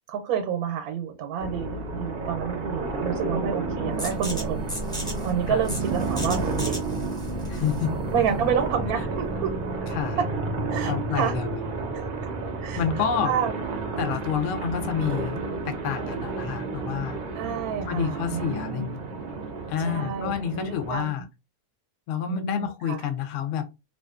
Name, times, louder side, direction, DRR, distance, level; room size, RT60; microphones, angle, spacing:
voice 1, 0.1-4.7 5.2-6.8 8.1-9.5 10.7-11.3 11.9-12.0 12.6-12.8 13.2-13.5 17.4-18.9 19.8-21.1 22.2-23.0, right 7 dB, 90° right, 1.1 m, -29 dB
sound 1, 1.4-21.0, right 3 dB, 60° right, 0.5 m, -31 dB
sound 2, 4.0-9.5, equal, 5° left, 0.5 m, -36 dB
voice 2, 7.5-7.9 9.9-10.2 10.8-11.6 12.8-13.4 14.0-15.4 15.6-17.2 17.8-19.1 19.7-21.3 22.1-23.7, left 8 dB, 65° left, 0.8 m, -29 dB
2.5 x 2.4 x 2.3 m
omnidirectional pair, 1.5 m